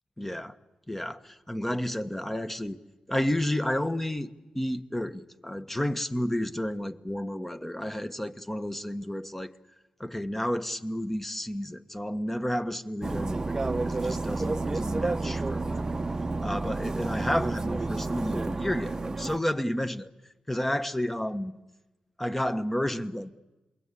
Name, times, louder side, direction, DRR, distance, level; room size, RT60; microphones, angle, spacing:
voice 1, 0.2-0.6 0.9-2.8 3.1-4.3 4.5-9.5 10.0-16.0 16.4-20.1 20.5-21.5 22.2-23.3, left 1 dB, 10° left, 1.3 m, -31 dB
sound 1, 13.0-19.4, right 3 dB, 25° right, 0.9 m, -30 dB
28.0 x 22.5 x 8.4 m
cardioid pair, 65°, 2 cm